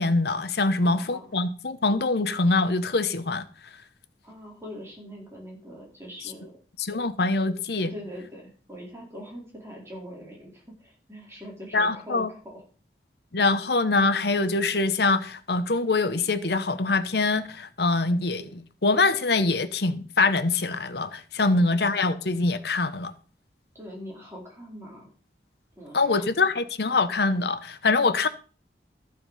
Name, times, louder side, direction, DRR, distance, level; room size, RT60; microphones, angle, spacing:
voice 1, 0.0-3.5 6.8-7.9 11.7-12.3 13.3-23.1 25.9-28.3, left 3 dB, 65° left, 0.9 m, -24 dB
voice 2, 0.8-1.3 4.2-6.6 7.9-12.6 21.5-21.9 23.7-25.1 25.8-26.3, equal, 15° right, 4.3 m, -42 dB
14.0 x 7.7 x 5.6 m
head